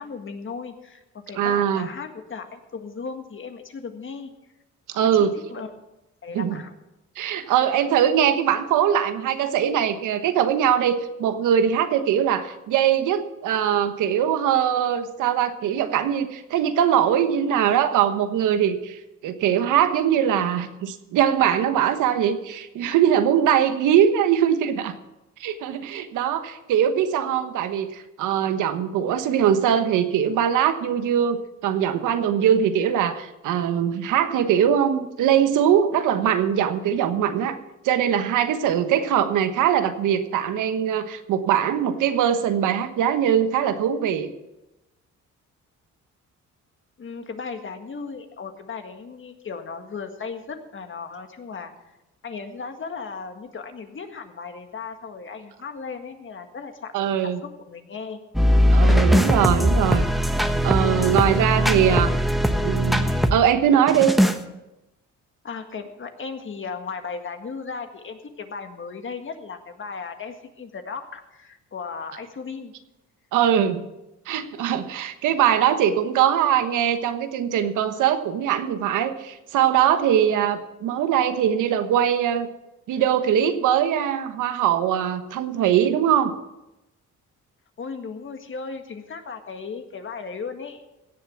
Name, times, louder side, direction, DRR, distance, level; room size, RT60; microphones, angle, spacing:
voice 1, 0.0-4.3 5.1-5.7 6.2-6.7 47.0-51.7 52.2-58.2 61.6-62.5 65.4-72.7 87.8-90.8, left 5 dB, 40° left, 6 dB, 1.8 m, -36 dB
voice 2, 1.3-1.9 4.9-5.3 6.3-6.6 7.2-24.9 25.4-37.6 37.8-44.3 56.9-57.4 58.7-60.0 60.6-62.1 62.6-64.1 73.3-73.8 74.3-82.5 82.9-86.3, right 9 dB, 85° right, 9 dB, 1.2 m, -21 dB
sound 1, 58.3-63.4 63.9-64.4, equal, ahead, 1.1 m, -20 dB
17.0 x 7.0 x 7.2 m, 0.96 s
cardioid pair, 90°, 30 cm